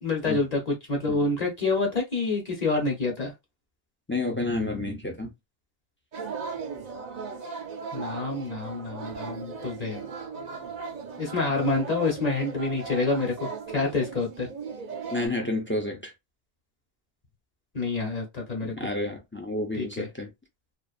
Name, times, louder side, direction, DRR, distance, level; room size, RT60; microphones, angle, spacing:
voice 1, 0.0-3.3 7.9-10.0 11.2-14.5 17.7-18.7 19.8-20.1, left 3 dB, 40° left, 1.0 m, -27 dB
voice 2, 4.1-5.3 15.1-16.1 18.6-20.3, left 2 dB, 20° left, 0.3 m, -30 dB
sound 1, 6.1-15.3, right 5 dB, 50° right, 0.6 m, -37 dB
2.5 x 2.4 x 2.4 m
omnidirectional pair, 1.2 m